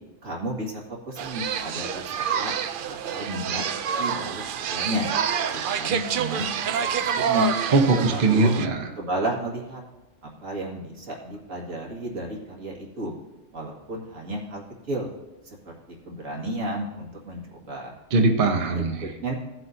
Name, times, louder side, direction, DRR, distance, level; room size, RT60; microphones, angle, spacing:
voice 1, 0.2-2.5 2.9-3.6 3.9-5.1 5.5-7.5 8.1-8.5 9.0-9.8 10.2-13.1 13.5-15.1 15.4-15.7 16.1-17.9 18.8-19.3, right 1 dB, 90° right, -3 dB, 2.3 m, -32 dB
sound 1, 1.2-8.7, right 8 dB, 65° right, 0.5 m, -27 dB
voice 2, 7.7-8.8 18.1-19.1, right 3 dB, 45° right, 3 dB, 1.0 m, -20 dB
16.5 x 7.8 x 2.7 m, 1.0 s
omnidirectional pair, 1.3 m